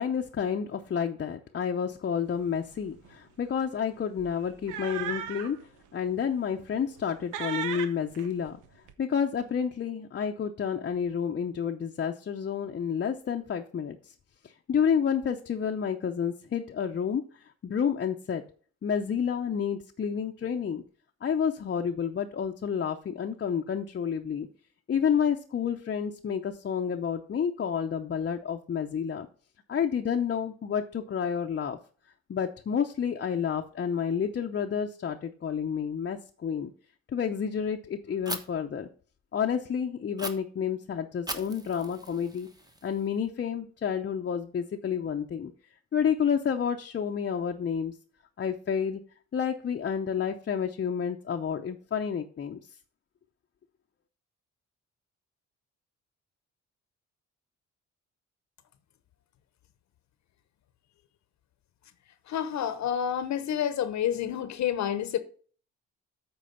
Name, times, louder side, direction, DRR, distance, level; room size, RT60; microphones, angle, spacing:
voice 1, 0.0-8.6 9.0-14.1 14.4-18.4 18.8-20.8 21.2-24.5 24.9-29.3 29.7-31.8 32.3-36.7 37.1-38.9 39.3-42.5 42.8-45.5 45.9-48.0 48.4-49.0 49.3-52.6, left 7 dB, 40° left, 0.7 m, -30 dB
sound 1, 2.4-2.6 2.9-3.1 4.2-5.6 6.1-6.2 6.7-7.1 7.3-8.9, right 9 dB, 85° right, 0.9 m, -36 dB
Fire, 38.3-38.4 40.2-40.3 41.3-43.2, right 1 dB, 15° right, 1.2 m, -38 dB
voice 2, 62.3-65.2, left 9 dB, 65° left, 0.9 m, -29 dB
8.4 x 4.7 x 5.8 m
cardioid pair, 90°, 30 cm